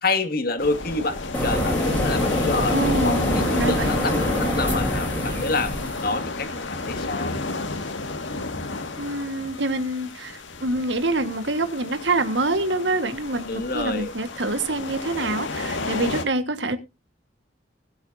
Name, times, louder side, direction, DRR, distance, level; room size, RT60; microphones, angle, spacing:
voice 1, 0.0-5.7 6.0-7.4 13.4-14.1, left 3 dB, 50° left, 8 dB, 2.0 m, -28 dB
sound 1, 0.6-16.3, left 3 dB, 90° left, 1.9 m, -31 dB
sound 2, 1.3-6.1, left 1 dB, 10° left, 3.4 m, -25 dB
voice 2, 2.7-4.0 9.0-16.8, right 2 dB, 70° right, 10 dB, 1.6 m, -26 dB
20.5 x 8.1 x 2.7 m, 0.26 s
head